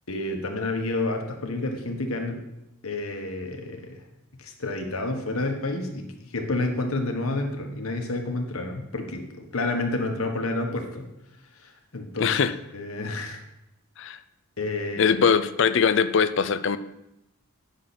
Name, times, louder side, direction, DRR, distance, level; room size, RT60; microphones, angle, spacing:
voice 1, 0.1-2.4 2.8-4.0 4.4-11.1 11.6-12.4 12.7-13.4 14.6-15.2, left 2 dB, 90° left, 1.4 m, -29 dB
voice 2, 12.2-12.5 14.0-14.2 15.0-16.8, left 6 dB, 60° left, 0.4 m, -21 dB
9.9 x 6.5 x 4.2 m
head